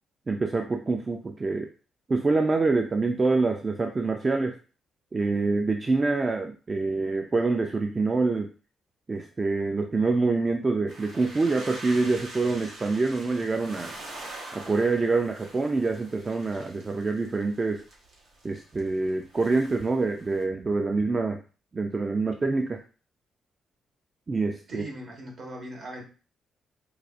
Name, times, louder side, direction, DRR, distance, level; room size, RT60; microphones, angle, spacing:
voice 1, 0.3-1.7 2.1-4.6 5.1-8.5 9.1-13.9 14.5-17.8 18.4-21.4 21.7-22.8 24.3-24.8, right 3 dB, 30° right, 4 dB, 0.3 m, -26 dB
sound 1, 10.9-20.4, right 2 dB, 80° right, 1.0 m, -45 dB
voice 2, 24.7-26.0, right 1 dB, 60° right, 0 dB, 1.3 m, -39 dB
4.7 x 2.4 x 2.4 m, 0.36 s
cardioid pair, 100°, 0 cm